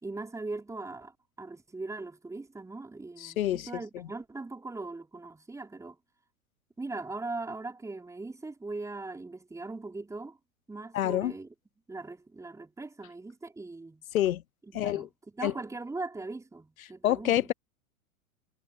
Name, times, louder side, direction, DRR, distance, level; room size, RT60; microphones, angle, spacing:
voice 1, 0.0-6.0 6.8-10.4 10.7-11.5 11.9-14.0 14.8-15.1 15.3-17.5, right 3 dB, 5° right, 4.2 m, -40 dB
voice 2, 3.2-3.7 3.9-4.1 10.9-11.3 14.1-14.4 14.7-15.1 15.4-15.5 17.0-17.5, left 12 dB, 75° left, 0.6 m, -27 dB
figure-of-eight pair, 100°, 42 cm